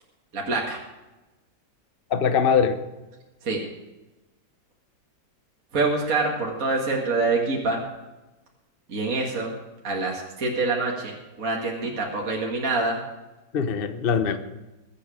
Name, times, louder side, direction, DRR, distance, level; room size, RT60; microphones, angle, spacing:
voice 1, 0.3-0.8 3.4-3.6 5.7-7.8 8.9-9.5 9.8-13.0, right 3 dB, 50° right, -2 dB, 2.2 m, -25 dB
voice 2, 2.1-2.8 13.5-14.4, left 6 dB, 45° left, 9 dB, 0.7 m, -22 dB
21.5 x 8.4 x 5.0 m, 1.1 s
omnidirectional pair, 2.0 m